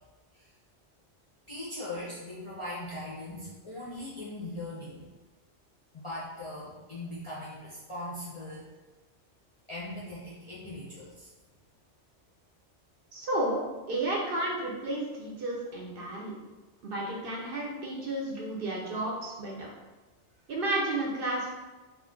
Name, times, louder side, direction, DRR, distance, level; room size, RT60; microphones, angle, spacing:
voice 1, 1.5-5.0 5.9-8.6 9.7-11.3, left 1 dB, 40° left, -8 dB, 0.5 m, -40 dB
voice 2, 13.1-13.6 13.9-16.3 16.8-19.7 20.5-21.5, right 1 dB, 60° right, -2 dB, 0.7 m, -32 dB
2.4 x 2.4 x 3.6 m, 1.2 s
omnidirectional pair, 1.2 m